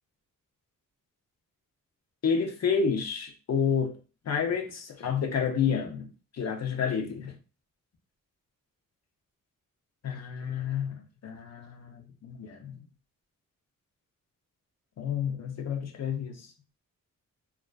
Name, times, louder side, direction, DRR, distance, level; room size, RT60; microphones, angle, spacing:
voice 1, 2.2-4.0 4.2-7.4 10.0-12.8 15.0-16.5, left 6 dB, 50° left, 0.6 m, -30 dB
2.4 x 2.2 x 2.3 m
cardioid pair, 85°, 33 cm